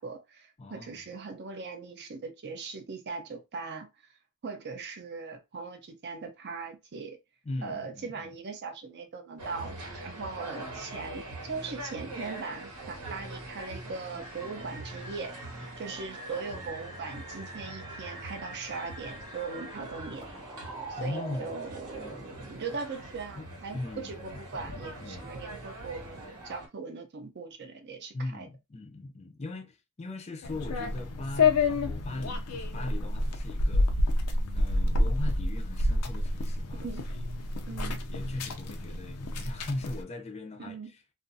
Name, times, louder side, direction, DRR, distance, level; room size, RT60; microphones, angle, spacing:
voice 1, 0.0-3.9 4.4-7.2 7.6-15.3 15.8-20.3 20.9-22.2 22.5-28.5 36.8-37.0 37.7-38.0 40.6-40.9, right 4 dB, 50° right, 0.5 m, -40 dB
voice 2, 0.6-1.0 7.4-8.3 21.0-21.5 22.0-22.6 23.4-24.4 25.0-25.3 28.1-33.9 34.5-36.9 38.1-41.0, left 2 dB, 30° left, 0.5 m, -39 dB
sound 1, 9.4-26.7, right 1 dB, 90° right, 1.0 m, -43 dB
sound 2, 14.2-22.5, right 1 dB, 20° right, 0.9 m, -45 dB
sound 3, 30.4-40.0, left 2 dB, 90° left, 0.5 m, -28 dB
2.4 x 2.3 x 2.5 m
head